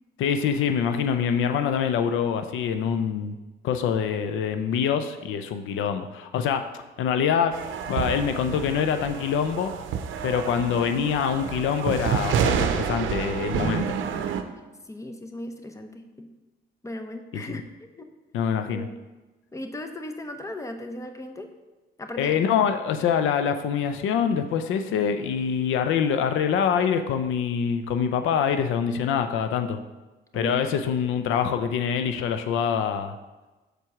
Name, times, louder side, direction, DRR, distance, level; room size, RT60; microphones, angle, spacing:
voice 1, 0.2-3.4 3.6-6.6 7.0-7.5 7.9-9.7 10.2-13.8 17.3-17.6 18.3-18.9 22.2-29.8 30.3-33.2, left 7 dB, 85° left, 8 dB, 0.5 m, -25 dB
sound 1, 7.5-14.4, right 8 dB, 80° right, 0.6 m, -29 dB
voice 2, 13.5-13.9 14.9-16.3 16.8-18.1 18.7-19.0 19.5-21.5 22.0-22.3 30.3-30.6, left 1 dB, 15° left, 6 dB, 0.7 m, -37 dB
6.7 x 4.5 x 4.8 m, 1.1 s
cardioid pair, 90°, 20 cm